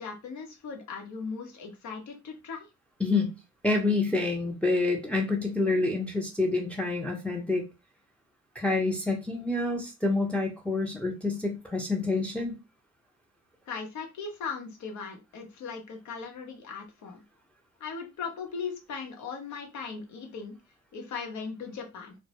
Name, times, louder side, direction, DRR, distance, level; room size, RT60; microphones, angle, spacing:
voice 1, 0.0-2.7 13.7-17.2 17.8-20.5 20.9-22.2, left 5 dB, 70° left, 2 dB, 0.8 m, -38 dB
voice 2, 3.0-3.3 3.6-7.6 8.5-12.5, left 3 dB, 5° left, 0 dB, 0.5 m, -27 dB
2.1 x 2.0 x 2.8 m, 0.27 s
cardioid pair, 90°, 30 cm